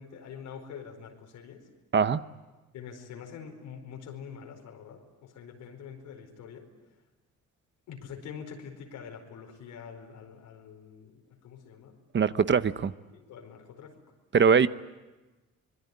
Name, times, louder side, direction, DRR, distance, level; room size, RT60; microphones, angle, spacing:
voice 1, 0.0-1.6 2.7-6.7 7.9-12.0 12.2-12.6 13.1-14.0, left 7 dB, 90° left, 3 dB, 4.8 m, -45 dB
voice 2, 12.1-12.9 14.3-14.7, right 6 dB, 40° right, 13 dB, 0.9 m, -22 dB
25.5 x 21.5 x 9.7 m, 1.1 s
cardioid pair, 90°, 30 cm